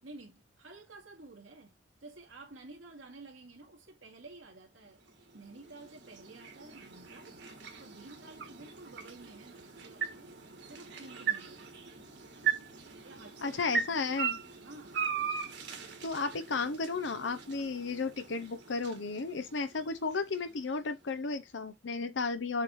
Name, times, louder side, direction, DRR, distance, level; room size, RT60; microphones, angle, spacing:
voice 1, 0.0-5.0 5.3-7.4 7.8-10.4 10.7-11.8 13.0-13.8 14.6-15.1, right 2 dB, 90° right, 2.4 m, -52 dB
sound 1, 4.9-21.1, right 7 dB, 60° right, 1.8 m, -39 dB
voice 2, 13.4-14.4 16.0-22.6, left 4 dB, 70° left, 0.7 m, -34 dB
7.4 x 4.1 x 3.1 m
head